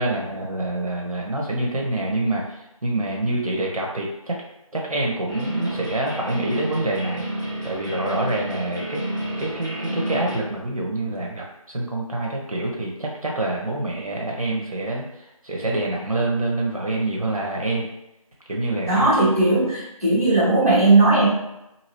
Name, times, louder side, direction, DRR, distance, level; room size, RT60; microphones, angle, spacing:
voice 1, 0.0-4.4 4.7-7.3 7.6-9.0 9.4-17.9 18.5-19.1, right 2 dB, 75° right, -2 dB, 0.7 m, -26 dB
sound 1, 5.3-10.4, right 1 dB, 35° left, 1.1 m, -30 dB
voice 2, 18.9-21.3, right 2 dB, 25° right, -11 dB, 1.2 m, -17 dB
2.9 x 2.6 x 2.9 m, 0.90 s
figure-of-eight pair, 175°, 19 cm